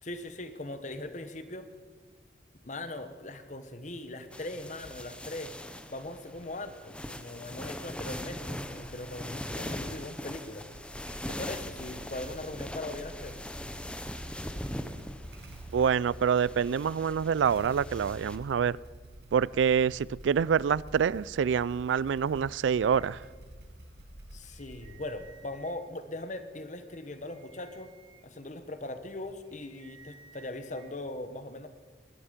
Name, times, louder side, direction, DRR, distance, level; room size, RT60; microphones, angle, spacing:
voice 1, 0.0-1.7 2.6-5.5 5.9-10.7 11.3-13.4 24.3-27.9 28.2-31.7, left 2 dB, 40° left, 10 dB, 1.1 m, -40 dB
sound 1, 4.3-18.4, left 1 dB, 5° left, 0.8 m, -41 dB
Motorcycle / Engine starting, 8.6-9.2 10.6-25.5, right 1 dB, 65° right, 1.6 m, -48 dB
voice 2, 15.7-18.8 19.3-23.2, right 7 dB, 85° right, 22 dB, 0.3 m, -26 dB
sound 2, 22.1-23.7 24.1-24.2 24.4-26.0 26.5-30.9, right 3 dB, 25° right, 2.1 m, -58 dB
20.5 x 12.0 x 5.1 m, 1.5 s
head